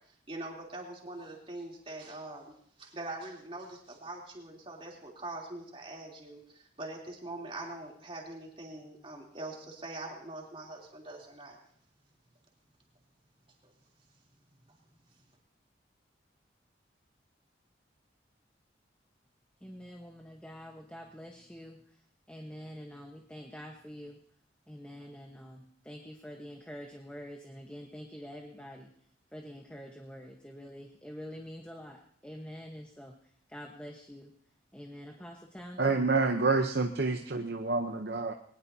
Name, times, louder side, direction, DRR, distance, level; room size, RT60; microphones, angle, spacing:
voice 1, 0.3-11.6, right 2 dB, 30° right, -1 dB, 3.2 m, -43 dB
voice 2, 19.6-21.8 22.3-24.2 24.7-28.9 29.3-33.1 33.5-34.3 34.7-36.0, equal, 5° left, 1 dB, 1.1 m, -46 dB
voice 3, 35.8-38.3, right 3 dB, 60° right, 5 dB, 0.8 m, -28 dB
21.5 x 19.5 x 2.8 m, 0.63 s
head